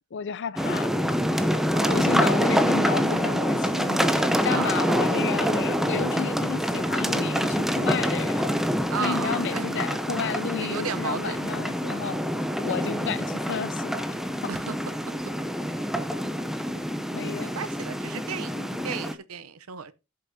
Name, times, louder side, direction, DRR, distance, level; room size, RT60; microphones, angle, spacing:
voice 1, 0.1-0.9 1.8-8.5 9.0-12.2 12.6-14.2 17.1-17.5 18.6-18.7, left 6 dB, 55° left, 0.5 m, -32 dB
sound 1, 0.6-19.1, equal, ahead, 0.7 m, -26 dB
voice 2, 4.5-5.0 8.9-9.7 10.6-11.5 12.8-13.0 14.5-14.8 16.7-16.8 17.1-18.5 18.8-19.9, right 6 dB, 80° right, 0.7 m, -34 dB
16.0 x 6.8 x 2.7 m
head